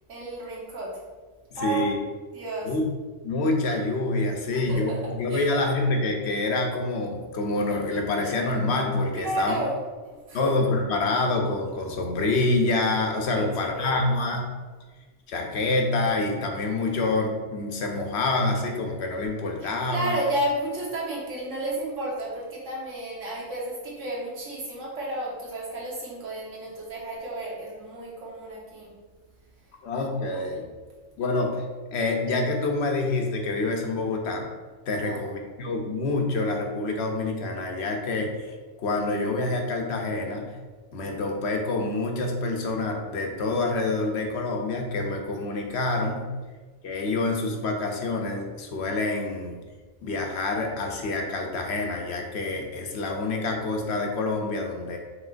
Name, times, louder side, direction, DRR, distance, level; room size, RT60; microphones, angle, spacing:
voice 1, 0.1-1.0 1.5-1.9 2.3-2.7 4.5-5.0 5.3-5.5 9.2-9.7 10.0-10.5 13.3-13.9 19.6-28.9 35.0-35.2, right 1 dB, 85° right, -5 dB, 1.5 m, -32 dB
voice 2, 1.6-1.9 2.6-2.8 3.2-9.5 10.3-14.4 15.3-20.2 29.8-30.7 31.2-31.6 31.9-34.5 34.9-40.5 40.9-46.3 46.8-49.6 50.0-55.0, left 2 dB, 70° left, 2 dB, 0.8 m, -27 dB
5.0 x 3.3 x 2.5 m, 1.4 s
omnidirectional pair, 1.3 m